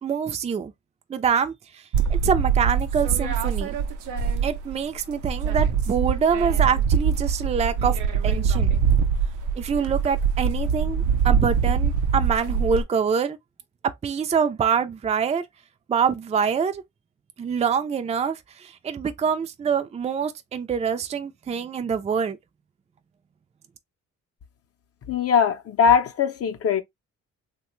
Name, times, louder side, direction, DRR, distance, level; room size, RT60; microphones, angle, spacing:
voice 1, 0.0-0.7 1.1-1.8 2.1-3.8 4.4-8.0 8.2-8.7 9.6-13.4 14.0-15.5 15.9-16.8 17.4-22.4, right 7 dB, 20° right, 0.4 m, -25 dB
sound 1, 1.9-4.8 5.1-12.8, right 6 dB, 85° right, 0.6 m, -23 dB
voice 2, 25.1-26.8, left 7 dB, 50° left, 0.6 m, -20 dB
3.1 x 2.2 x 3.0 m
cardioid pair, 90°, 30 cm